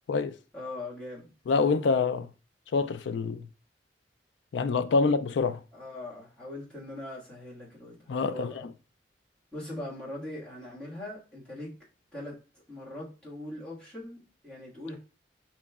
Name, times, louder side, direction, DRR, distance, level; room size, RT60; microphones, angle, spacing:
voice 1, 0.5-1.3 5.7-8.7 9.5-11.7 12.1-12.4 12.7-14.9, left 1 dB, 5° left, 1.6 m, -41 dB
voice 2, 1.5-2.3 2.7-3.5 4.5-5.6 8.1-8.5, left 4 dB, 90° left, 0.3 m, -26 dB
5.1 x 3.0 x 2.3 m
head